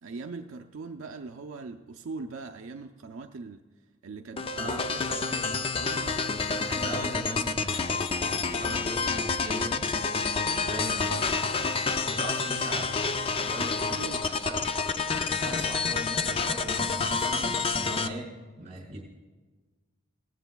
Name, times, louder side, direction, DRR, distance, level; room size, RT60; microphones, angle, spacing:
voice 1, 0.0-3.6 4.0-5.2 5.7-6.2 10.3-11.3 13.6-13.7 14.0-14.2, right 4 dB, 80° right, 5 dB, 0.5 m, -41 dB
sound 1, 4.4-18.1, left 4 dB, 25° left, 0.4 m, -29 dB
voice 2, 4.5-5.7 6.3-9.9 10.5-11.1 11.9-13.0 13.4-14.7 15.0-18.3 18.6-19.0, right 1 dB, 35° right, -2 dB, 4.7 m, -39 dB
18.0 x 15.0 x 2.3 m, 1.3 s
head